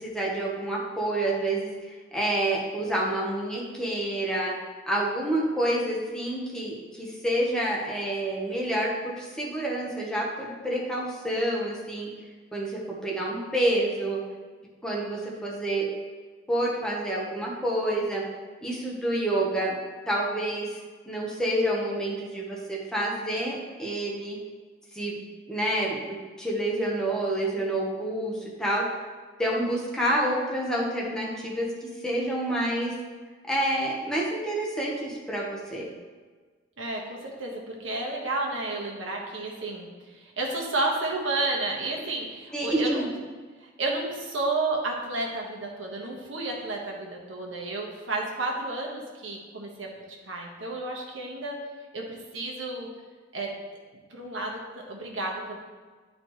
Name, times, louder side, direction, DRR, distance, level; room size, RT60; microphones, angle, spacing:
voice 1, 0.0-4.6 4.9-12.1 12.5-14.2 14.8-15.9 16.5-18.3 18.6-19.8 20.1-20.8 21.1-24.4 24.9-25.2 25.5-28.9 29.4-32.9 33.5-35.9 42.5-43.1, right 1 dB, 5° left, -4 dB, 1.1 m, -28 dB
voice 2, 36.8-43.1 43.6-49.9 50.3-51.6 51.9-52.9 53.3-53.5 54.1-55.6, right 2 dB, 85° right, -1 dB, 1.3 m, -31 dB
11.0 x 4.2 x 3.1 m, 1.4 s
head